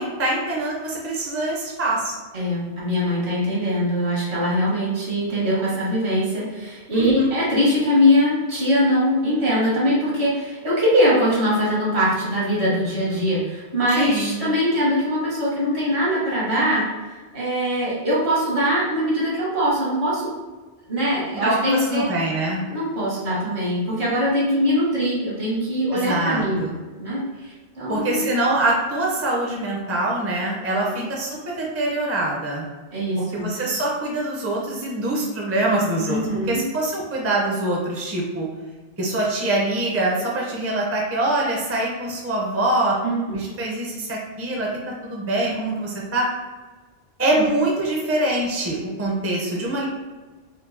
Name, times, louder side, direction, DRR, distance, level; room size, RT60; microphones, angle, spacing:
voice 1, 0.0-2.1 6.9-7.3 14.0-14.3 21.3-22.6 25.9-26.8 27.9-32.6 33.2-36.2 36.5-38.5 39.0-43.0 43.3-44.7 45.0-46.3 47.2-49.9, right 1 dB, 20° right, -3 dB, 0.5 m, -24 dB
voice 2, 2.3-20.3 20.9-22.0 22.7-26.6 27.0-27.2 27.7-28.2 30.9-31.1 32.9-33.5 36.1-36.6 43.0-43.2 43.4-43.5, equal, 65° right, -7 dB, 1.6 m, -22 dB
4.5 x 2.3 x 2.6 m, 1.3 s
omnidirectional pair, 1.2 m